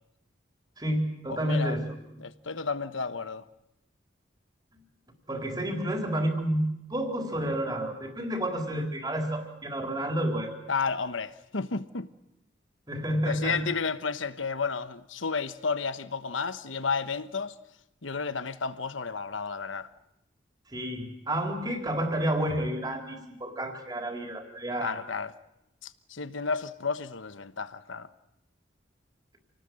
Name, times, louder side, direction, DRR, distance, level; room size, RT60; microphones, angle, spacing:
voice 1, 0.8-1.9 5.3-10.6 12.9-13.6 20.7-25.0, right 1 dB, 20° right, 4.1 m, -30 dB
voice 2, 1.3-1.8 2.2-3.4 10.7-12.1 13.2-17.6 18.0-19.9 24.8-25.3 25.8-28.1, left 5 dB, 85° left, 1.2 m, -32 dB
28.5 x 19.0 x 7.8 m
head